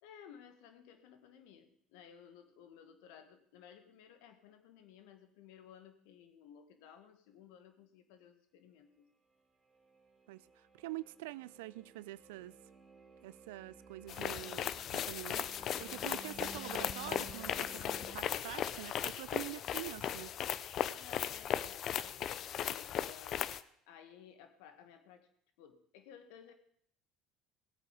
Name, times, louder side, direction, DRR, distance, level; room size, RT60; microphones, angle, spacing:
voice 1, 0.0-9.1 20.9-23.6 23.9-25.3 25.6-26.5, left 8 dB, 70° left, 8 dB, 1.8 m, -57 dB
sound 1, 9.6-18.2, right 6 dB, 25° right, 2.7 m, -55 dB
voice 2, 10.3-12.6 13.2-20.3, right 18 dB, 75° right, 19 dB, 0.4 m, -46 dB
sound 2, 14.1-23.6, left 10 dB, 50° left, 0.6 m, -37 dB
17.5 x 8.6 x 5.2 m, 0.67 s
hypercardioid pair, 70°, 0 cm